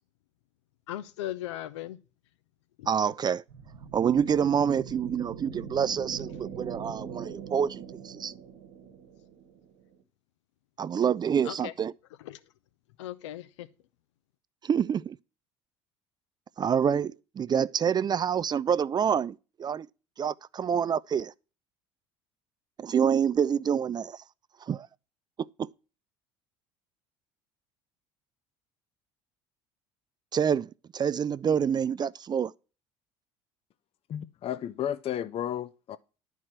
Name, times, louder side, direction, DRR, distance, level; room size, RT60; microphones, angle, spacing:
voice 1, 0.9-2.0 2.8-2.9 11.4-11.7 12.2-12.4 13.0-13.7, left 13 dB, 75° left, 0.7 m, -37 dB
voice 2, 2.9-3.4 3.9-8.3 10.8-11.9 14.6-15.2 16.6-19.9 20.2-21.3 22.8-24.2 24.6-24.9 25.4-25.7 30.3-32.5, right 7 dB, 30° right, 0.4 m, -27 dB
sound 1, 3.5-10.0, right 7 dB, 80° right, 1.3 m, -42 dB
voice 3, 34.1-36.0, left 10 dB, 40° left, 0.5 m, -33 dB
11.0 x 4.7 x 5.9 m
hypercardioid pair, 65°, 15 cm